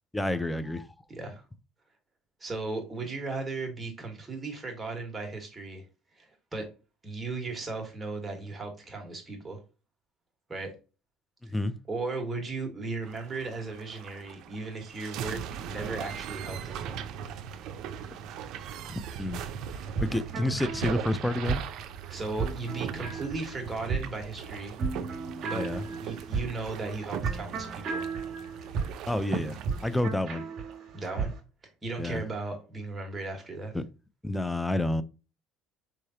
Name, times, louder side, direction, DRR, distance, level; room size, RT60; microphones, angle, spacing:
voice 1, 0.1-0.9 11.4-11.8 18.9-19.5 20.0-21.6 25.5-25.8 29.1-30.4 32.0-32.2 33.7-33.8 34.2-35.0, left 1 dB, 5° left, 0.3 m, -29 dB
voice 2, 1.1-1.4 2.4-5.8 6.2-6.7 7.0-9.6 10.5-10.7 11.5-11.6 11.9-15.4 15.6-17.0 22.1-24.7 25.4-28.1 30.9-31.3 31.8-33.7, right 3 dB, 15° right, 1.3 m, -36 dB
sound 1, 13.0-30.0, right 8 dB, 60° right, 0.5 m, -39 dB
sound 2, 19.7-31.3, right 5 dB, 45° right, 1.2 m, -35 dB
4.6 x 3.2 x 2.7 m
cardioid pair, 140°, 0 cm